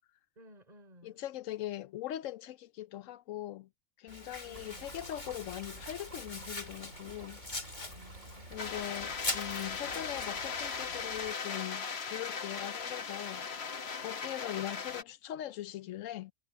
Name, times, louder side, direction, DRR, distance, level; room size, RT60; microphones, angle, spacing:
voice 1, 0.4-1.2 4.1-5.0 7.9-9.0, equal, 30° right, 3.9 m, -59 dB
voice 2, 1.0-3.7 4.0-7.4 8.5-16.3, left 13 dB, 80° left, 1.0 m, -41 dB
Domestic sounds home sounds, 4.1-10.5, left 2 dB, 35° left, 2.5 m, -43 dB
sound 1, 4.5-11.3, right 2 dB, 85° right, 4.3 m, -51 dB
sound 2, 8.6-15.0, left 6 dB, 55° left, 1.3 m, -38 dB
omnidirectional pair, 1.3 m